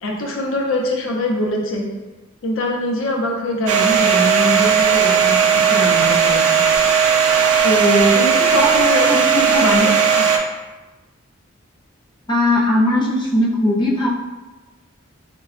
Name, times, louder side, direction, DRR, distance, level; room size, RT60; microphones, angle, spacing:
voice 1, 0.0-1.9 2.4-6.5 7.6-9.3 9.6-9.8, left 1 dB, 70° left, 0 dB, 0.6 m, -22 dB
Domestic sounds home sounds, 3.7-10.4, right 7 dB, 90° right, 0.4 m, -16 dB
voice 2, 9.1-9.6 12.3-14.1, left 1 dB, 20° left, -3 dB, 0.5 m, -18 dB
4.0 x 2.2 x 2.4 m, 1.2 s
head